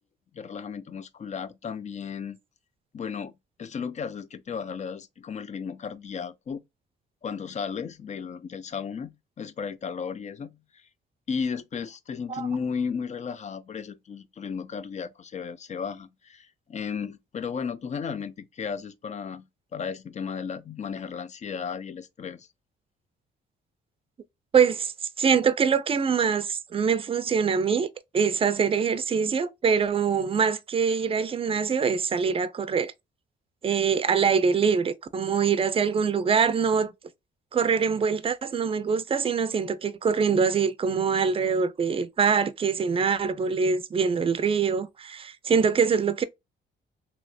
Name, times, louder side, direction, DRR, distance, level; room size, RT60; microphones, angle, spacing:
voice 1, 0.3-2.4 2.9-3.3 3.6-6.6 7.2-10.9 11.3-19.5 19.7-22.5, left 6 dB, 35° left, 0.4 m, -34 dB
voice 2, 24.5-24.9 25.2-27.9 28.1-32.9 33.6-36.9 37.5-46.2, right 6 dB, 30° right, 0.5 m, -24 dB
3.1 x 2.8 x 2.6 m
cardioid pair, 90°, 20 cm